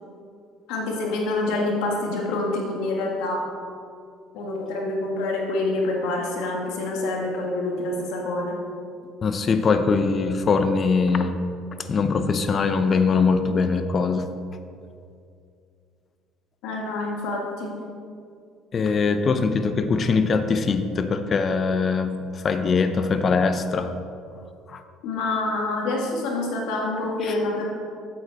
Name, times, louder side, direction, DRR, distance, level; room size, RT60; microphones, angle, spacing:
voice 1, 0.7-3.4 4.3-8.6 16.6-17.8 25.0-27.6, left 2 dB, 75° left, -1 dB, 1.9 m, -26 dB
voice 2, 9.2-11.4 11.8-14.3 18.7-23.9 24.7-24.8 27.2-27.3, left 4 dB, 40° left, 9 dB, 0.7 m, -22 dB
8.6 x 7.8 x 4.1 m, 2.4 s
supercardioid pair, 80°, 0 cm